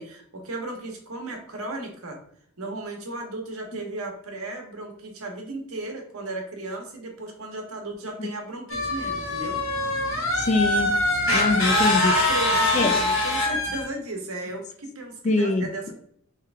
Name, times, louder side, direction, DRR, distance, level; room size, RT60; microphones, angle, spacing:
voice 1, 0.0-2.2 2.6-9.6 12.0-15.9, right 2 dB, 75° right, 2 dB, 1.0 m, -35 dB
sound 1, 8.7-13.8, left 2 dB, 65° left, 1.6 m, -23 dB
voice 2, 10.4-10.9 11.3-12.1 12.7-12.9 15.2-15.6, left 2 dB, 30° left, 6 dB, 0.3 m, -23 dB
3.4 x 3.1 x 3.4 m, 0.65 s
head